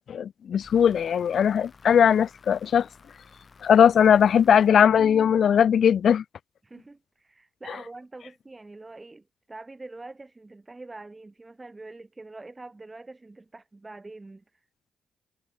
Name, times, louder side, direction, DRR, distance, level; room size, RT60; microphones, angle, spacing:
voice 1, 0.0-2.9 3.6-6.2, left 8 dB, 65° left, 0.4 m, -19 dB
sound 1, 0.6-5.5, left 5 dB, 45° left, 3.4 m, -54 dB
voice 2, 6.6-14.6, right 2 dB, 25° right, 1.4 m, -44 dB
supercardioid pair, 60°, 0 cm